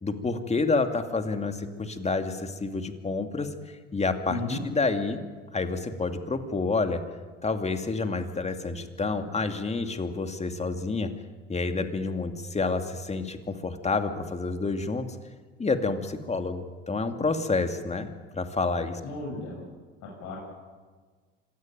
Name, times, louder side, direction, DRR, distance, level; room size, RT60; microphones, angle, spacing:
voice 1, 0.0-5.2 5.5-7.0 7.4-11.1 11.5-15.1 15.6-19.0, left 3 dB, 20° left, 7 dB, 2.5 m, -29 dB
voice 2, 4.3-4.6 19.0-19.6 20.2-20.4, left 3 dB, 60° left, -2 dB, 7.5 m, -34 dB
25.5 x 17.0 x 9.2 m, 1.4 s
hypercardioid pair, 75°, 33 cm